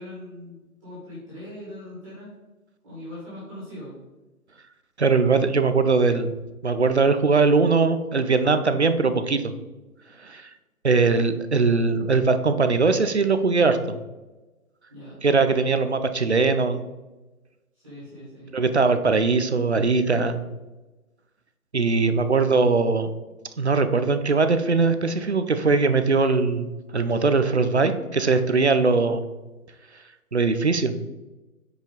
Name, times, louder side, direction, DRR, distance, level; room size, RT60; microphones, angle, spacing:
voice 1, 0.0-2.3 2.8-4.0 10.9-11.2 14.9-15.2 17.7-18.5, left 1 dB, 15° right, -10 dB, 2.1 m, -40 dB
voice 2, 5.0-6.3 6.6-9.5 10.2-10.5 10.8-14.0 15.2-16.9 18.5-20.4 21.7-23.1 23.6-29.2 30.3-31.0, right 4 dB, 50° right, 10 dB, 0.6 m, -21 dB
7.3 x 5.1 x 3.9 m, 1.1 s
hypercardioid pair, 175°, 44 cm